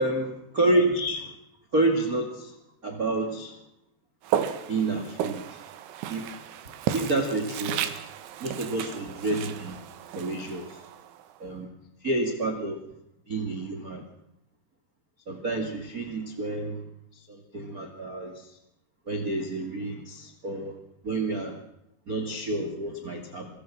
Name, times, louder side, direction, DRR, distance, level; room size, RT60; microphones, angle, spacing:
voice 1, 0.6-1.3 1.7-2.5 2.8-3.5 4.7-5.6 6.1-6.3 6.9-7.9 8.4-9.8 10.1-10.8 11.4-11.7 12.0-12.8 13.3-14.0 15.3-16.8 17.1-18.6 19.1-20.7 21.0-21.6 22.1-23.5, right 2 dB, 30° right, 5 dB, 1.8 m, -29 dB
Walk footsteps, 4.2-11.4, right 10 dB, 85° right, 3.8 m, -34 dB
26.0 x 22.5 x 6.1 m, 0.82 s
omnidirectional pair, 5.2 m